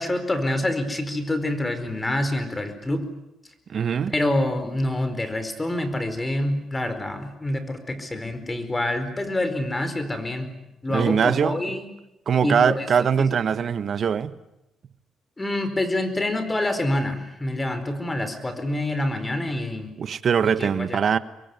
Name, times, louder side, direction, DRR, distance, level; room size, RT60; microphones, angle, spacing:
voice 1, 0.0-3.1 4.1-10.5 10.8-11.9 12.4-13.3 15.4-19.9 20.4-21.0, left 1 dB, 20° left, 4.6 m, -26 dB
voice 2, 3.7-4.1 10.9-11.7 12.3-14.3 20.0-21.2, right 7 dB, 55° right, 1.3 m, -22 dB
25.5 x 22.0 x 9.7 m
cardioid pair, 90°, 0 cm